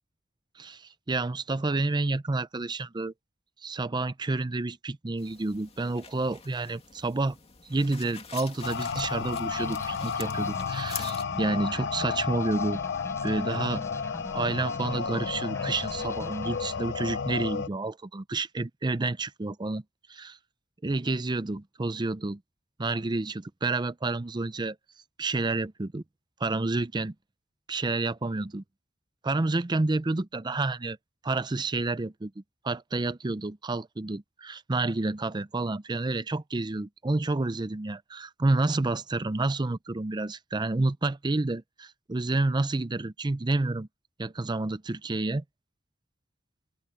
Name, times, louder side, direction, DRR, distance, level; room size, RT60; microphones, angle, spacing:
voice 1, 0.6-3.1 3.6-7.4 7.7-12.8 13.2-13.8 14.3-19.8 20.1-20.4 20.8-22.4 22.8-24.8 25.2-26.0 26.4-27.1 27.7-28.6 29.2-31.0 31.2-32.3 32.6-43.9 44.2-45.4, right 2 dB, 20° right, 0.5 m, -29 dB
sound 1, 5.2-11.2, left 7 dB, 30° left, 2.4 m, -45 dB
sound 2, 8.6-17.7, left 6 dB, 60° left, 0.5 m, -32 dB
sound 3, 9.5-17.1, left 1 dB, 15° left, 4.9 m, -44 dB
open air
head